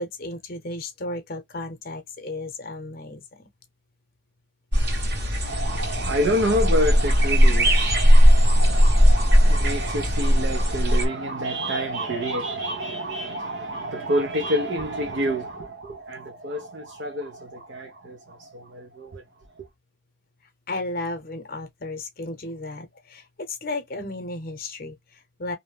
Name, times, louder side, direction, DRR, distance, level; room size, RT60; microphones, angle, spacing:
voice 1, 0.0-3.5 20.7-25.6, left 2 dB, 50° left, 0.7 m, -34 dB
sound 1, 4.7-11.1, equal, 55° right, 1.2 m, -18 dB
voice 2, 5.4-19.2, equal, 75° right, 0.6 m, -28 dB
2.6 x 2.1 x 3.2 m
head